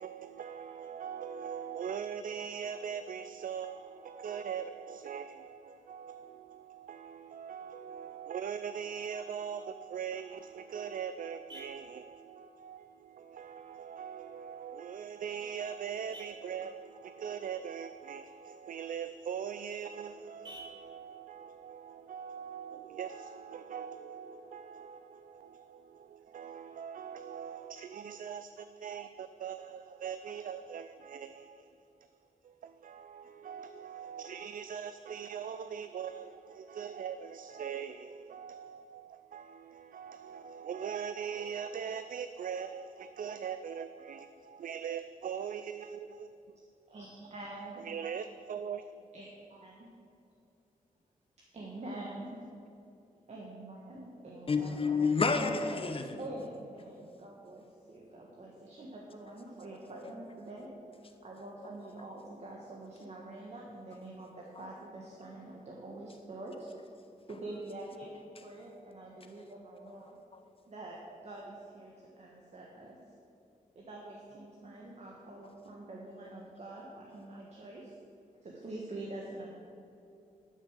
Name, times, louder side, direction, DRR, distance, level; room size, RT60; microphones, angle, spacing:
voice 1, 0.0-32.1 32.4-46.6 47.6-49.0, right 7 dB, 70° right, 0.4 m, -41 dB
Vehicle horn car horn honking, 10.2-23.2, right 1 dB, 30° right, 2.5 m, -58 dB
voice 2, 46.9-47.8 49.1-49.9 51.5-52.4 53.3-54.7 56.2-60.7 61.2-66.7 67.3-68.1 68.4-70.2 70.7-71.0 71.2-73.0 73.7-77.9 78.4-79.5, right 2 dB, 50° right, 1.4 m, -46 dB
voice 3, 54.5-56.2 60.0-60.1 70.3-70.4, left 4 dB, 40° left, 1.0 m, -29 dB
11.5 x 6.4 x 7.5 m
wide cardioid pair, 145°, 15 cm